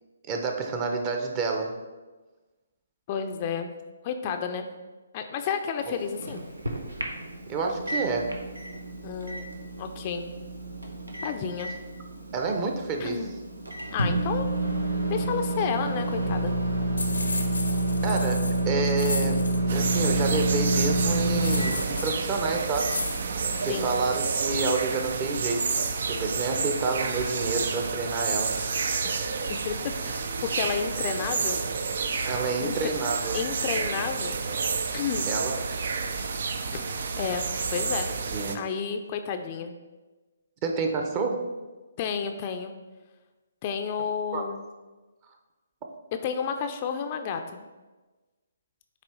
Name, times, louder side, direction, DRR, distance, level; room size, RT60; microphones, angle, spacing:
voice 1, 0.3-1.7 5.9-6.0 7.5-8.3 12.3-13.3 18.0-19.4 19.7-22.9 23.6-25.7 26.0-28.6 32.2-33.4 35.2-35.6 38.3-38.6 40.6-41.5 44.3-44.4, right 4 dB, 30° right, 3 dB, 0.8 m, -29 dB
voice 2, 3.1-3.7 4.0-4.7 5.1-6.4 9.0-9.5 9.8-10.3 11.2-11.7 13.0-13.3 13.9-14.5 15.1-16.5 23.7-23.9 29.0-29.1 29.5-29.8 30.0-31.6 32.6-32.9 33.3-34.4 34.9-35.3 36.7-36.8 37.2-37.4 37.7-38.1 38.5-39.7 42.0-42.7 43.6-44.6 46.2-47.6, left 7 dB, 35° left, 6 dB, 0.5 m, -31 dB
Microwave oven, 5.8-25.1, right 1 dB, 90° right, 1.0 m, -29 dB
sound 1, 17.0-19.6 21.2-22.3 22.9-23.2, left 3 dB, 85° left, 0.8 m, -34 dB
sound 2, 19.7-38.5, right 4 dB, 60° right, 0.5 m, -30 dB
8.2 x 3.0 x 4.4 m, 1.2 s
figure-of-eight pair, 140°, 0 cm